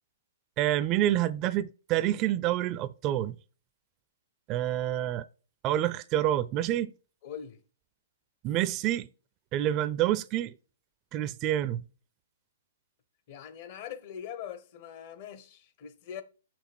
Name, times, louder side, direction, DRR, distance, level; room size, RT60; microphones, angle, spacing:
voice 1, 0.6-3.4 4.5-5.2 5.6-6.9 8.4-9.1 9.5-10.6 11.1-11.8, right 13 dB, 35° right, 0.5 m, -27 dB
voice 2, 7.2-7.6 13.3-16.2, left 9 dB, 45° left, 1.1 m, -42 dB
6.6 x 6.0 x 4.4 m
hypercardioid pair, 125°, 0 cm